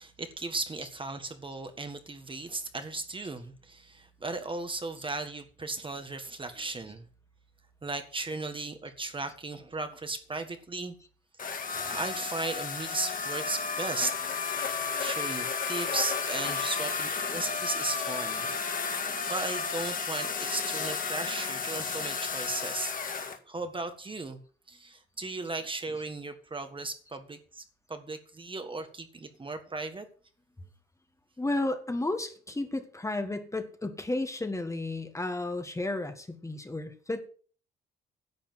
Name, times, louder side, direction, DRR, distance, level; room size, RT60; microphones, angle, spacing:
voice 1, 0.0-7.0 7.8-10.9 11.9-14.1 15.0-18.5 19.3-22.9 23.5-24.4 24.7-27.6 27.9-30.1, right 3 dB, 25° right, 8 dB, 1.6 m, -36 dB
sound 1, 11.4-23.4, left 5 dB, 45° left, 2.1 m, -33 dB
voice 2, 31.4-37.2, left 2 dB, 15° left, 7 dB, 1.6 m, -32 dB
11.0 x 7.1 x 7.5 m, 0.43 s
cardioid pair, 90°, 20 cm